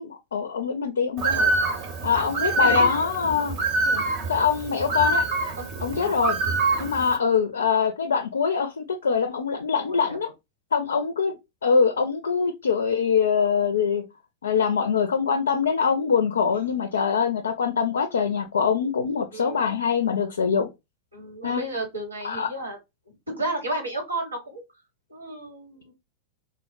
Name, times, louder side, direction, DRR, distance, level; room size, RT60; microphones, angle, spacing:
voice 1, 0.0-1.4 2.0-3.5 4.3-5.2 5.8-6.4 6.8-10.3 10.7-11.4 11.6-14.0 14.4-20.7 21.4-21.6 22.2-22.5, left 6 dB, 70° left, 0.4 m, -23 dB
Bird, 1.2-7.2, right 3 dB, 45° right, 0.7 m, -25 dB
voice 2, 5.6-6.2 6.7-6.8 9.8-10.2 16.5-16.6 19.3-19.6 21.1-22.8 23.3-24.6 25.1-25.9, right 1 dB, 80° right, 1.1 m, -32 dB
3.9 x 2.1 x 2.3 m
figure-of-eight pair, 90°, 0 cm